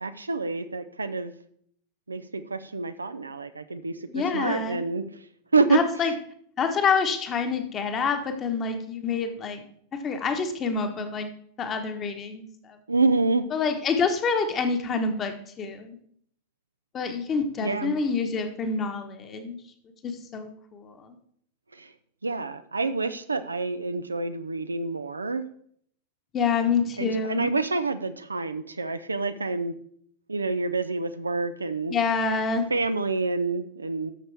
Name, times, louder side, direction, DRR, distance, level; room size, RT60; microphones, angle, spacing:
voice 1, 0.0-1.3 2.1-5.0 5.5-5.8 12.9-13.5 17.6-17.9 21.7-21.9 22.2-25.5 27.0-29.7 30.3-31.9 32.7-34.1, right 3 dB, 80° right, 11 dB, 0.5 m, -27 dB
voice 2, 4.1-4.9 5.7-6.1 6.6-9.6 10.0-11.3 11.6-12.8 13.5-16.0 16.9-19.6 20.0-21.2 26.3-27.6 31.9-32.7, left 5 dB, 25° left, 6 dB, 1.3 m, -27 dB
12.0 x 6.5 x 3.4 m, 0.64 s
figure-of-eight pair, 90°, 0 cm